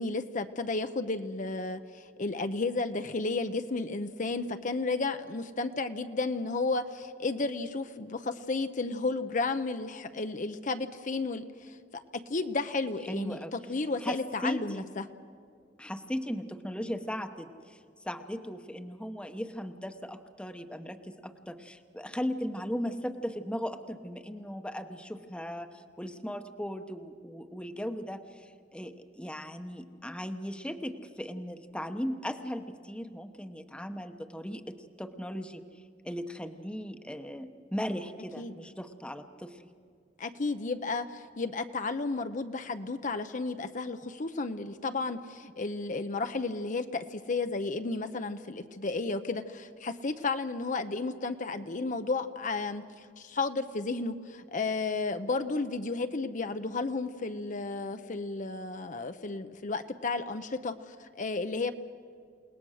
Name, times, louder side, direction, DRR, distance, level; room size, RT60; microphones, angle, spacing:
voice 1, 0.0-15.1 38.4-38.5 40.2-61.7, left 3 dB, 45° left, 8 dB, 0.7 m, -33 dB
voice 2, 13.1-13.5 14.0-14.9 15.8-17.8 18.0-25.7 26.0-35.6 36.0-39.6, equal, 5° left, 8 dB, 0.9 m, -37 dB
29.0 x 19.0 x 6.4 m, 2.2 s
head